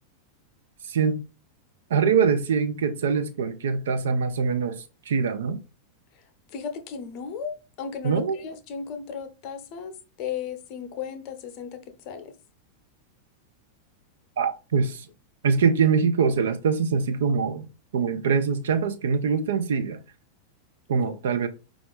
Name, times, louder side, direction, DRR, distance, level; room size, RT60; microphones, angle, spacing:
voice 1, 0.9-1.2 1.9-5.6 8.0-8.4 14.4-15.1 15.4-17.7 17.9-20.0 20.9-21.5, right 5 dB, 60° right, 0.5 m, -23 dB
voice 2, 6.5-11.8 12.1-12.3 21.1-21.2, left 7 dB, 40° left, 0.7 m, -35 dB
4.9 x 2.4 x 3.5 m
figure-of-eight pair, 90°, 0 cm